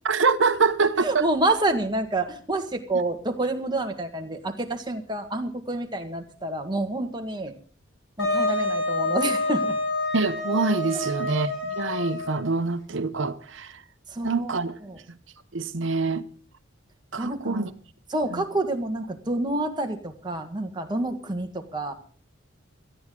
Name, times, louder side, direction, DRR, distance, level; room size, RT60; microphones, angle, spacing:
voice 1, 0.0-1.2 10.1-13.8 14.2-14.8 15.1-15.2 15.5-16.3 17.1-17.7 18.3-18.4, right 4 dB, 75° right, 1.0 m, -25 dB
voice 2, 1.0-7.5 8.2-9.8 10.9-11.1 14.1-14.6 14.8-15.0 17.2-17.7 18.1-21.9, right 2 dB, 20° right, 1.7 m, -28 dB
Wind instrument woodwind instrument, 8.2-12.5, left 2 dB, 70° left, 6.0 m, -28 dB
18.0 x 13.5 x 3.8 m
head